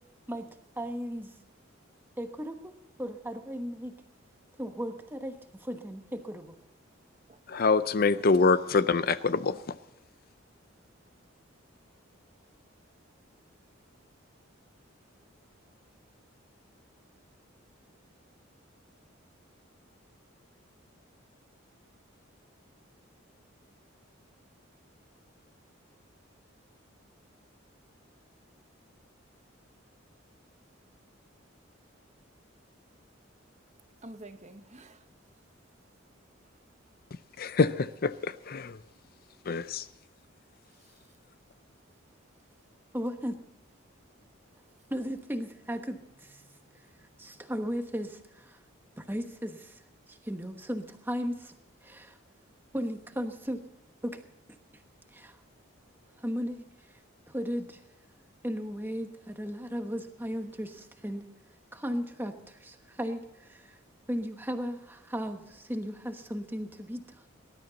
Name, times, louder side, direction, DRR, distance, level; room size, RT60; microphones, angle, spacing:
voice 1, 0.8-1.3 2.2-3.9 4.6-6.6 42.9-43.4 44.9-46.4 47.2-48.6 49.0-49.8 50.1-51.5 51.8-52.2 52.7-53.6 54.0-54.2 55.1-55.4 56.2-56.6 57.3-57.8 58.4-61.2 61.7-63.8 64.1-67.3, equal, 10° right, 6 dB, 1.1 m, -36 dB
voice 2, 7.5-9.7 37.4-38.8 39.5-39.9, left 4 dB, 45° left, 14 dB, 0.5 m, -25 dB
voice 3, 34.0-35.0 39.1-39.5 40.8-41.0 46.4-47.5, right 1 dB, 35° right, 8 dB, 1.0 m, -51 dB
19.5 x 12.5 x 4.0 m, 0.86 s
head